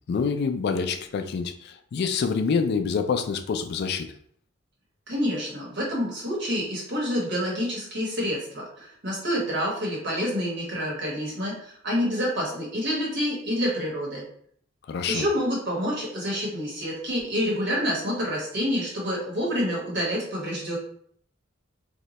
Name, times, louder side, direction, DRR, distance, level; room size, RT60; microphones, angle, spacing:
voice 1, 0.1-4.1 14.9-15.3, left 5 dB, 55° left, 8 dB, 0.3 m, -26 dB
voice 2, 5.1-14.2 15.1-20.8, equal, 60° right, -3 dB, 1.2 m, -28 dB
2.7 x 2.1 x 4.0 m, 0.62 s
head